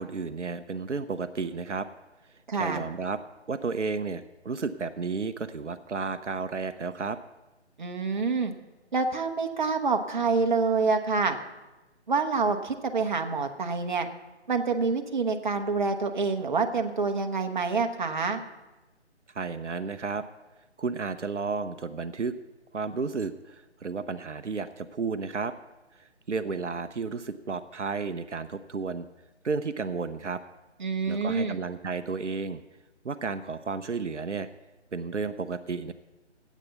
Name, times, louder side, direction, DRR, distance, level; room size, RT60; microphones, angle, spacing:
voice 1, 0.0-1.9 2.5-3.2 3.5-7.2 19.3-20.2 20.8-22.3 22.7-25.5 26.0-29.1 29.4-30.4 31.0-32.6 33.0-34.5 34.9-35.9, right 4 dB, 90° right, 11 dB, 0.7 m, -32 dB
voice 2, 2.5-2.8 7.8-8.5 8.9-11.4 12.1-14.1 14.5-18.4 30.8-31.6, right 4 dB, 40° right, 5 dB, 1.0 m, -27 dB
10.5 x 8.3 x 6.9 m, 1.1 s
figure-of-eight pair, 150°, 35 cm